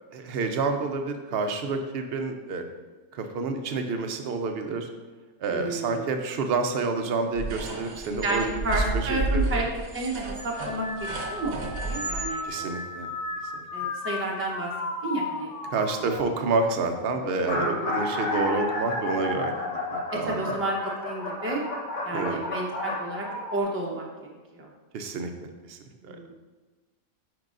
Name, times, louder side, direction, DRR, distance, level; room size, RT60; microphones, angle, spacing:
voice 1, 0.1-2.6 3.1-4.9 5.4-9.7 12.4-13.1 13.4-13.6 15.7-19.5 19.9-20.6 22.1-22.4 24.9-25.3 25.6-25.8 26.0-26.2, right 4 dB, 55° right, 6 dB, 0.7 m, -29 dB
voice 2, 5.5-6.0 8.2-9.7 9.9-11.5 11.8-12.7 13.7-14.7 15.0-15.5 16.0-16.1 17.5-18.1 20.1-21.6 22.0-24.0 24.5-24.7 26.0-26.3, right 2 dB, 10° right, -2 dB, 0.7 m, -31 dB
sound 1, 7.4-12.3, right 2 dB, 90° right, 1.3 m, -31 dB
sound 2, 10.4-20.0 20.4-21.0 22.0-22.4, left 3 dB, 55° left, 0.7 m, -36 dB
sound 3, 15.4-15.7 16.5-16.6 16.8-16.9 17.2-23.6, left 2 dB, 85° left, 1.5 m, -31 dB
9.1 x 4.8 x 2.5 m, 1.3 s
omnidirectional pair, 1.4 m